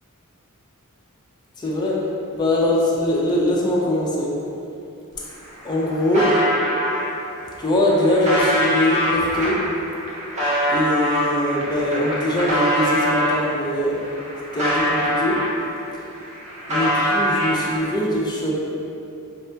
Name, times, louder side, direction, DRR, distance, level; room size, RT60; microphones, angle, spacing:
voice 1, 1.6-2.0 2.3-4.3 5.6-6.3 7.6-9.6 10.7-14.0 14.5-15.4 16.7-18.5, left 1 dB, 20° left, -4 dB, 0.4 m, -22 dB
sound 1, 5.1-5.2 5.5-7.0 7.6-13.4 13.9-15.8 16.1-18.0, equal, 35° right, 0.6 m, -23 dB
4.1 x 2.7 x 2.2 m, 2.7 s
head